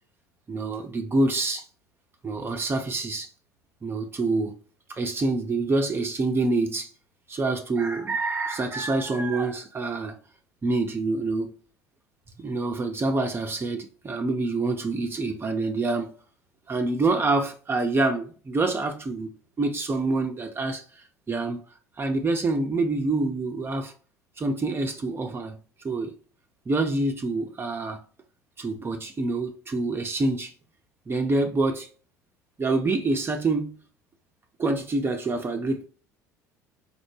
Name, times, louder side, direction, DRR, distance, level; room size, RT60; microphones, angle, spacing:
voice 1, 0.5-1.6 2.2-3.3 3.8-4.6 4.9-6.9 7.3-10.2 10.6-11.5 12.4-16.1 16.7-19.3 19.6-21.6 22.0-23.9 24.4-25.6 25.8-26.1 26.7-28.0 28.6-30.5 31.1-31.9 32.6-33.8 34.6-35.9, right 3 dB, 25° right, 0.6 m, -26 dB
5.1 x 2.1 x 3.1 m
hypercardioid pair, 65°, 9 cm